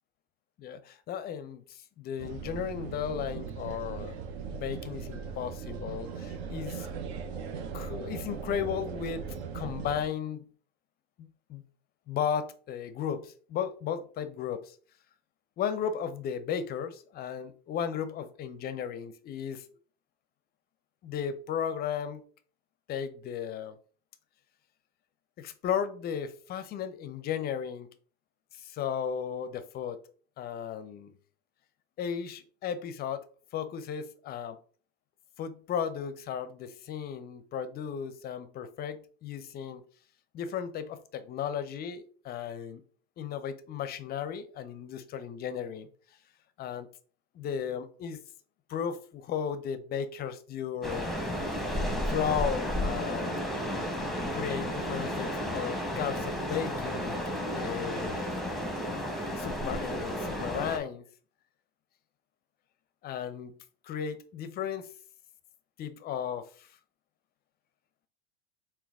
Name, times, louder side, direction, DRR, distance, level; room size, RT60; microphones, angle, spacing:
voice 1, 0.6-4.2 4.5-6.9 7.7-9.3 9.5-10.4 11.2-11.6 12.1-14.8 15.6-19.7 21.0-22.2 22.9-23.8 25.4-27.9 28.5-30.0 30.4-31.1 32.0-33.3 33.5-34.6 35.4-39.8 40.3-42.8 43.2-45.9 46.6-46.9 47.3-48.2 48.7-51.1 52.1-53.3 54.3-58.4 59.4-61.0 63.0-63.6 63.8-64.9 65.8-66.7, left 8 dB, 30° left, 0.5 m, -35 dB
sound 1, 2.2-10.1, right 6 dB, 70° right, 0.7 m, -39 dB
sound 2, 50.8-60.8, equal, ahead, 0.7 m, -32 dB
3.9 x 2.2 x 3.4 m
hypercardioid pair, 95°, 33 cm